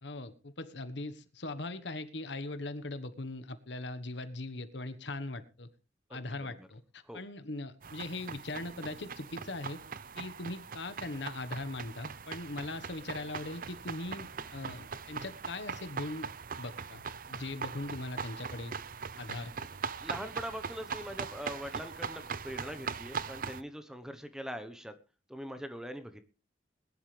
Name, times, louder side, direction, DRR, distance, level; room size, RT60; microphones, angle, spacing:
voice 1, 0.0-5.7 6.1-9.8 10.1-16.3 16.6-17.0 17.3-18.7 19.2-19.5, left 2 dB, 70° left, 11 dB, 1.4 m, -40 dB
sound 1, 7.8-23.6, right 6 dB, 50° right, 0.7 m, -41 dB
voice 2, 20.0-24.9 25.3-26.2, equal, 5° right, 9 dB, 1.1 m, -42 dB
21.0 x 11.5 x 3.4 m, 0.32 s
head